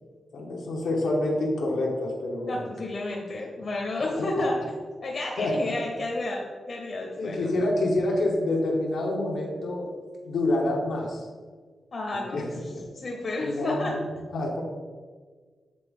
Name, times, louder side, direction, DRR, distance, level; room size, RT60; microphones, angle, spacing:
voice 1, 0.3-2.7 4.1-4.2 5.4-5.8 7.2-9.9 10.2-11.3 12.1-12.9 13.4-14.6, left 1 dB, 90° left, -2 dB, 1.0 m, -27 dB
voice 2, 2.5-4.6 5.0-7.5 11.9-12.4 12.9-13.9, left 2 dB, 40° left, -1 dB, 0.7 m, -31 dB
7.7 x 3.7 x 3.6 m, 1.5 s
wide cardioid pair, 180°, 0 cm